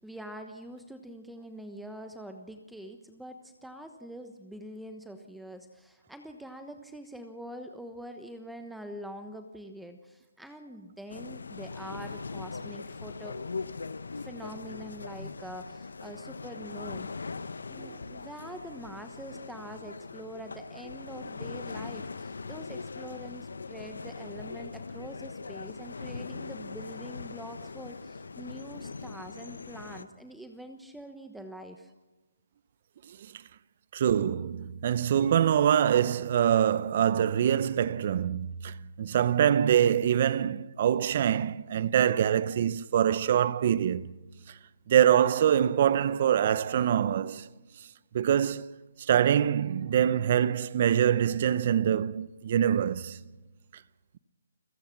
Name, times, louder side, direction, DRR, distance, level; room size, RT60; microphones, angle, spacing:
voice 1, 0.0-13.4 14.1-17.1 17.7-31.9, equal, ahead, 1.1 m, -44 dB
sound 1, 11.1-30.0, left 4 dB, 75° left, 1.2 m, -41 dB
voice 2, 17.8-18.2 33.1-33.4 33.9-44.1 44.5-44.6 44.9-47.5 47.8-47.9 48.1-53.2, right 9 dB, 45° right, 0.8 m, -25 dB
29.5 x 16.0 x 6.0 m
figure-of-eight pair, 145°, 0 cm